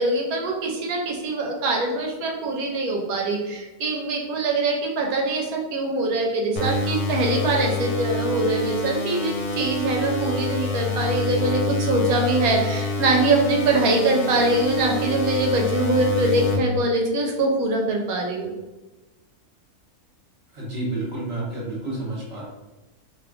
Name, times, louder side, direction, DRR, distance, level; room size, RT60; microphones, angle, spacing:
voice 1, 0.0-18.5, right 2 dB, 75° right, 1 dB, 1.0 m, -23 dB
sound 1, 6.6-16.6, left 2 dB, 85° left, 1.2 m, -27 dB
voice 2, 20.5-22.4, right 2 dB, 50° right, -5 dB, 1.0 m, -30 dB
2.8 x 2.4 x 3.4 m, 1.1 s
omnidirectional pair, 1.6 m